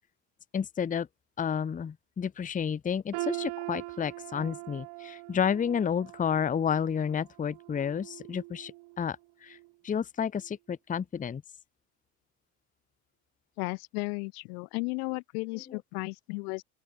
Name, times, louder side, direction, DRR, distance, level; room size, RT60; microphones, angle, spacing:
voice 1, 0.5-1.1 1.4-8.7 9.0-9.2 9.4-9.6 9.8-11.4 15.7-15.8, left 7 dB, 20° left, 0.6 m, -30 dB
sound 1, 3.1-9.1 9.5-9.7 10.4-10.5, right 26 dB, 60° right, 0.9 m, -41 dB
voice 2, 13.6-16.6, left 30 dB, 75° left, 0.7 m, -34 dB
open air
hypercardioid pair, 70°, 46 cm